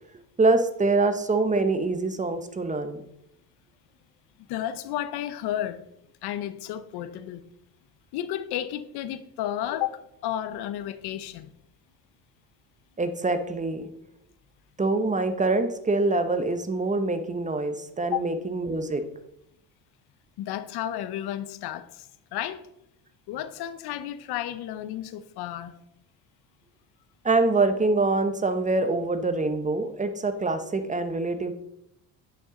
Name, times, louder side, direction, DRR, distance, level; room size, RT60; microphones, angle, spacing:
voice 1, 0.4-3.0 13.0-13.9 14.8-19.0 27.2-31.5, right 3 dB, 20° right, 0.8 m, -25 dB
voice 2, 4.5-5.9 6.2-7.4 8.1-11.5 18.0-18.3 20.4-22.6 23.3-25.8, left 12 dB, 70° left, 0.7 m, -32 dB
9.3 x 5.7 x 3.7 m
supercardioid pair, 90°, 40 cm